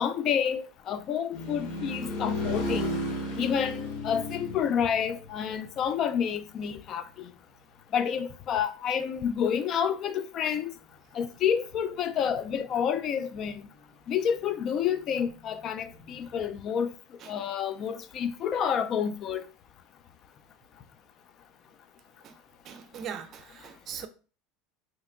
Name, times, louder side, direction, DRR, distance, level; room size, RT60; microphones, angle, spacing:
voice 1, 0.0-3.0 3.4-7.3 7.9-10.7 11.1-13.7 14.1-16.9 17.3-19.4, left 8 dB, 45° left, 0.4 m, -29 dB
sound 1, 1.3-6.3 15.8-16.5, left 1 dB, 65° left, 0.8 m, -34 dB
voice 2, 22.6-24.1, right 8 dB, 45° right, 0.5 m, -41 dB
2.9 x 2.2 x 3.6 m
supercardioid pair, 110°, 0 cm